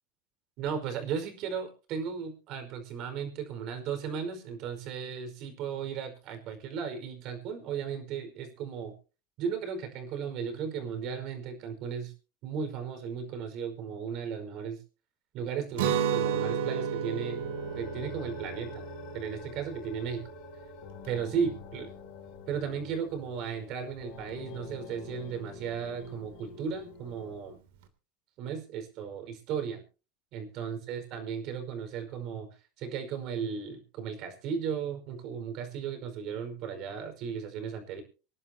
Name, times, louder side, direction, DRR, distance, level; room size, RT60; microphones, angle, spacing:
voice 1, 0.6-8.9 9.4-12.1 12.4-14.8 15.3-17.5 17.7-18.8 19.1-20.2 21.0-21.9 22.5-27.6 28.4-29.8 30.3-32.5 32.8-38.0, right 7 dB, 55° right, 7 dB, 5.1 m, -35 dB
Guitar, 15.7-21.6, right 8 dB, 85° right, 2.9 m, -33 dB
sound 1, 17.3-27.3, left 8 dB, 55° left, 2.9 m, -48 dB
26.5 x 11.0 x 2.9 m, 0.34 s
supercardioid pair, 125°, 0 cm